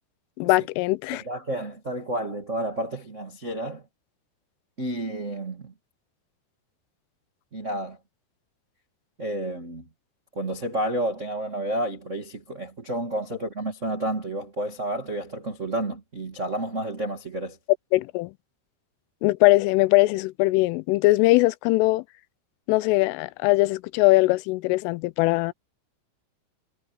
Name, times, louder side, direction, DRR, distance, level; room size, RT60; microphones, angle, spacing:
voice 1, 0.4-1.2 17.9-18.3 19.2-22.0 22.7-25.5, left 21 dB, 90° left, 3.1 m, -21 dB
voice 2, 1.1-3.8 4.8-5.7 7.5-8.0 9.2-9.9 10.3-17.6, right 1 dB, 85° right, 0.6 m, -30 dB
omnidirectional pair, 5.7 m